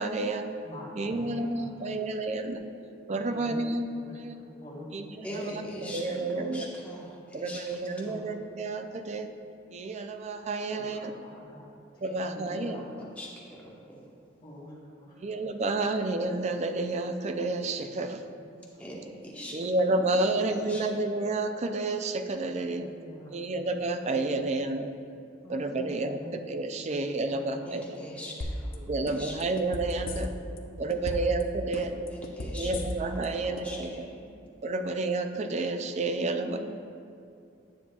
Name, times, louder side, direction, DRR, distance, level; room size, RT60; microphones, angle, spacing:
voice 1, 0.0-0.6 1.0-2.6 3.1-3.9 4.2-4.4 4.9-6.7 7.3-9.3 9.7-11.1 12.0-12.8 15.1-18.2 19.5-22.9 23.3-24.9 25.5-28.0 28.8-30.3 30.8-31.9 32.5-34.1 34.6-36.6, right 2 dB, 40° right, 7 dB, 0.4 m, -30 dB
voice 2, 0.6-1.9 3.1-4.9 5.3-5.6 5.8-6.0 8.0-8.2 8.9-9.0 10.7-12.9 14.4-15.3 15.6-15.7 18.7-18.8 19.4-19.5 22.7-23.6 24.0-24.5 25.4-26.4 26.7-28.2 28.5-28.6 30.1-30.2 30.5-31.3 33.3-33.7 34.1-34.4 34.7-34.8 36.4-36.6, left 1 dB, 30° left, -7 dB, 1.8 m, -47 dB
voice 3, 5.2-8.3 12.0-12.1 12.4-12.9 13.2-14.0 18.8-19.6 19.9-20.8 27.6-29.4 32.1-32.9 33.1-34.1, equal, 10° left, -5 dB, 1.2 m, -42 dB
sound 1, 28.4-28.8 29.1-30.6 30.9-31.4 31.7-33.3 33.6-33.7, left 2 dB, 55° left, 0.5 m, -34 dB
9.7 x 7.2 x 2.3 m, 2.5 s
head